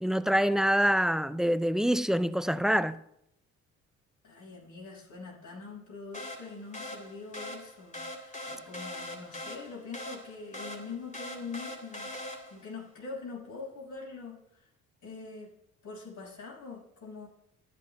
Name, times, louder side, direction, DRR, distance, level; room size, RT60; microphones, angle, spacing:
voice 1, 0.0-3.0, equal, ahead, 0.4 m, -25 dB
voice 2, 4.2-14.4 15.0-15.5 15.8-17.3, left 4 dB, 50° left, 6.0 m, -43 dB
sound 1, 6.1-12.7, left 1 dB, 20° left, 3.1 m, -42 dB
26.5 x 11.0 x 2.3 m
hypercardioid pair, 55°, 40 cm